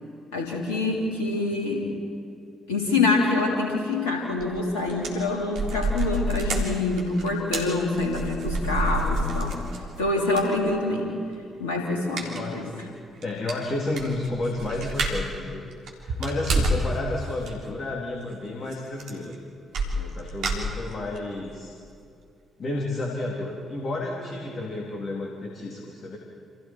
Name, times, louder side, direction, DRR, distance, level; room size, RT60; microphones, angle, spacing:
voice 1, 0.3-1.9 2.7-9.6 10.0-11.1 11.6-12.7, left 3 dB, 75° left, -1 dB, 3.1 m, -26 dB
sound 1, 4.4-4.6 4.9-10.0 10.4-10.5 12.2-12.5 12.8-12.9 13.2-13.3 13.5-15.4 15.7-16.9 17.2-17.5 18.7-18.8 19.0-19.3 19.7-21.2 21.6-21.7 22.0-22.1, right 1 dB, 65° right, 3.6 m, -28 dB
voice 2, 12.2-12.8 13.2-15.7 16.0-19.3 19.9-21.7 22.6-26.2, left 2 dB, 45° left, -1 dB, 3.4 m, -31 dB
29.0 x 27.5 x 4.7 m, 2.4 s
figure-of-eight pair, 40°, 0 cm